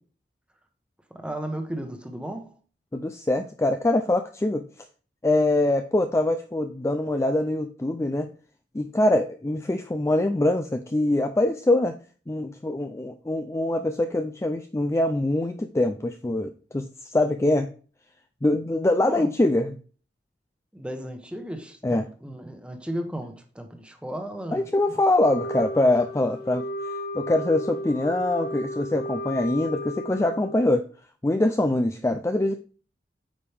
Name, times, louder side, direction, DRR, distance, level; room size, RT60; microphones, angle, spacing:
voice 1, 1.1-2.6 18.6-18.7 19.1-19.3 20.7-25.0, right 1 dB, 5° right, 1.1 m, -35 dB
voice 2, 2.9-4.6 5.2-8.3 8.7-11.9 12.3-17.7 18.4-19.8 21.8-22.1 24.5-26.7 27.1-30.9 31.2-32.6, left 1 dB, 15° left, 0.4 m, -24 dB
Wind instrument woodwind instrument, 25.2-30.8, left 1 dB, 55° left, 0.9 m, -34 dB
8.9 x 5.2 x 3.4 m
head